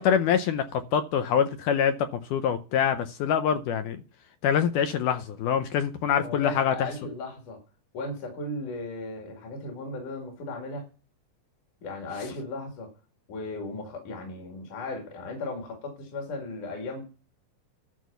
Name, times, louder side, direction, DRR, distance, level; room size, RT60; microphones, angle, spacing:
voice 1, 0.0-4.0 4.4-6.9, left 8 dB, 80° left, 1.9 m, -25 dB
voice 2, 6.2-7.6 7.9-10.8 11.8-12.9 13.3-17.0, left 2 dB, 60° left, 3.6 m, -36 dB
12.5 x 4.6 x 6.8 m
omnidirectional pair, 4.3 m